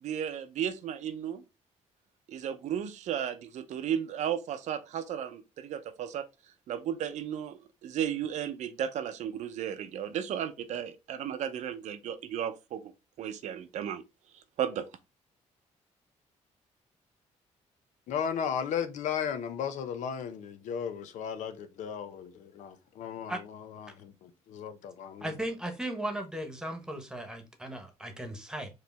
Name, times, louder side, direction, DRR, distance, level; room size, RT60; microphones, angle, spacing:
voice 1, 0.0-1.4 2.3-6.2 6.7-12.9 13.2-14.0 14.6-14.8, right 9 dB, 75° right, 0.7 m, -34 dB
voice 2, 18.1-23.4 23.8-25.3, left 7 dB, 80° left, 0.7 m, -35 dB
voice 3, 25.2-28.7, right 1 dB, 5° right, 1.2 m, -36 dB
4.9 x 3.2 x 3.3 m
cardioid pair, 125°, 12 cm